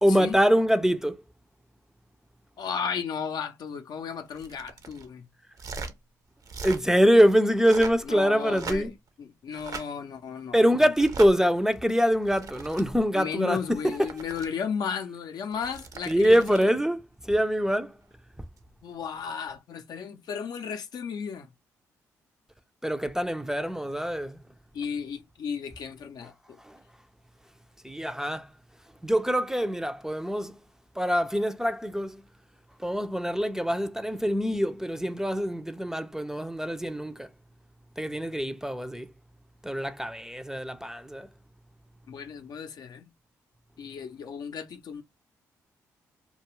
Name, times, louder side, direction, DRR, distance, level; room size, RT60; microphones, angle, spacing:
voice 1, 0.0-1.2 6.6-8.9 10.5-14.0 16.1-17.9 22.8-24.4 26.6-26.8 27.8-28.5 29.0-30.6 31.0-32.2 32.8-37.3 38.0-39.1 39.6-41.3, equal, 5° right, 0.4 m, -24 dB
voice 2, 2.6-5.2 8.0-8.9 9.2-10.8 13.1-16.7 18.8-21.5 24.7-26.6 42.1-43.1 43.8-45.0, left 6 dB, 60° left, 0.5 m, -34 dB
sound 1, 4.3-5.1 5.5-5.9 6.4-6.8 7.5-8.1 8.5-9.1 9.5-9.9 11.0-11.3 12.1-12.8 13.7-14.5 15.5-16.7 18.6-18.8, right 4 dB, 50° right, 0.6 m, -40 dB
2.3 x 2.3 x 3.0 m
hypercardioid pair, 45°, 8 cm